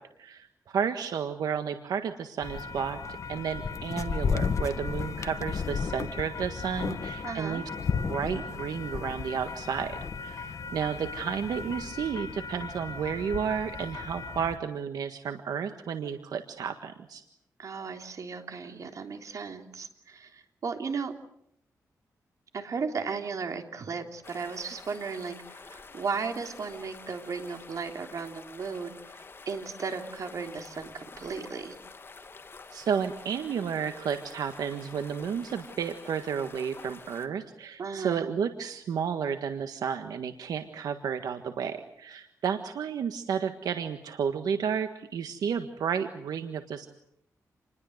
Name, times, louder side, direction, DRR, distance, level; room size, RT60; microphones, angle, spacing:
voice 1, 0.2-3.0 3.3-7.6 8.1-17.2 32.7-46.9, right 7 dB, 90° right, 7 dB, 1.6 m, -32 dB
sound 1, 2.4-14.6, left 5 dB, 55° left, 1.6 m, -34 dB
voice 2, 7.2-7.6 17.6-21.1 22.5-29.0 29.4-31.7 37.8-38.3, right 5 dB, 60° right, 5 dB, 3.4 m, -35 dB
sound 2, 24.2-37.3, left 4 dB, 35° left, 2.1 m, -48 dB
28.5 x 21.0 x 8.0 m, 0.74 s
cardioid pair, 100°, 6 cm